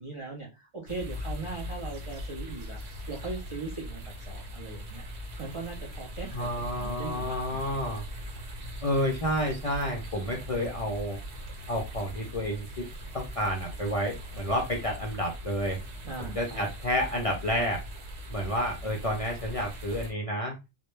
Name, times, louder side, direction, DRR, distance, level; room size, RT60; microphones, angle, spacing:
voice 1, 0.0-2.8 3.1-5.0 5.4-7.8 16.0-16.7, right 3 dB, 50° right, -1 dB, 0.3 m, -39 dB
sound 1, 0.9-20.1, equal, 70° right, 1.0 m, -40 dB
voice 2, 6.3-8.0 8.8-11.2 11.7-12.9 13.1-15.8 16.2-17.8 18.3-20.5, equal, 55° left, 1 dB, 0.4 m, -30 dB
2.1 x 2.1 x 3.0 m, 0.26 s
omnidirectional pair, 1.1 m